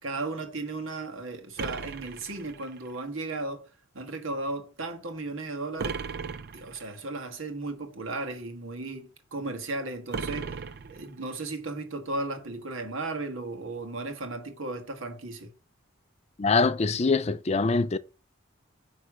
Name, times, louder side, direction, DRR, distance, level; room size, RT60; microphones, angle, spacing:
voice 1, 0.0-3.7 3.9-6.0 6.5-15.5, right 2 dB, 70° right, 1.5 m, -35 dB
sound 1, 1.6-3.0 5.8-6.9 10.1-11.4, right 5 dB, 45° right, 0.5 m, -36 dB
voice 2, 16.4-18.0, left 4 dB, 30° left, 0.4 m, -24 dB
9.5 x 3.2 x 6.0 m
head